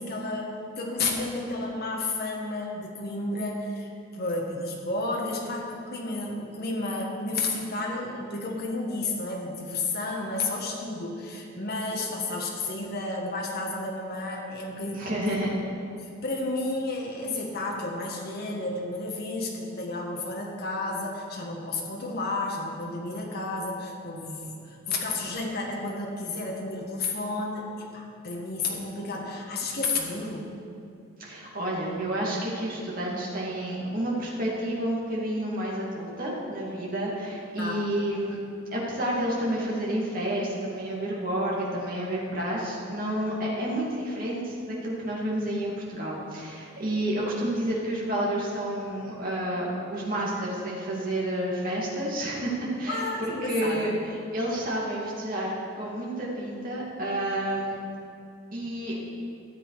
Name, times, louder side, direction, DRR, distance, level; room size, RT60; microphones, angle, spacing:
voice 1, 0.0-15.5 16.2-30.5 37.6-37.8 52.9-54.0, left 2 dB, 50° left, -1 dB, 1.6 m, -32 dB
voice 2, 15.0-15.5 31.2-38.4 38.7-52.5 52.8-53.1 53.4-57.8 58.5-59.0, right 1 dB, 45° right, -5 dB, 2.4 m, -30 dB
13.5 x 7.8 x 4.9 m, 2.5 s
head